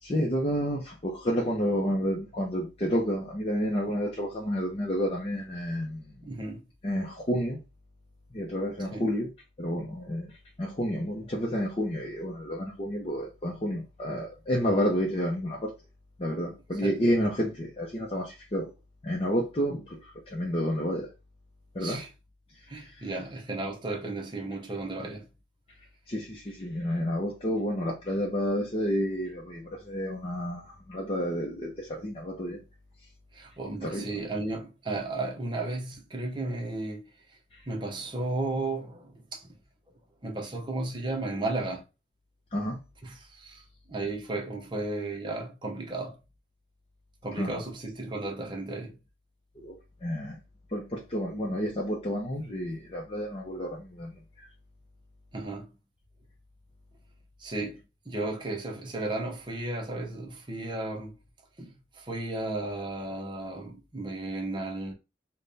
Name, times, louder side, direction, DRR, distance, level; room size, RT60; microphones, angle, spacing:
voice 1, 0.0-6.2 6.8-7.6 8.3-9.3 9.6-10.3 10.6-15.7 16.2-18.7 19.0-21.1 21.7-22.0 22.7-23.2 26.1-32.6 33.8-34.1 37.5-37.6 42.5-42.8 47.4-47.7 49.6-50.4 50.7-54.5, equal, 30° left, 0.6 m, -30 dB
voice 2, 6.2-6.6 8.9-9.1 16.8-17.0 21.8-22.1 22.7-25.3 33.3-37.1 37.7-39.5 40.2-41.8 43.0-43.6 43.9-46.2 47.2-49.0 55.3-55.8 57.4-61.2 61.6-64.9, right 2 dB, 25° right, 0.7 m, -34 dB
3.5 x 2.2 x 3.9 m
head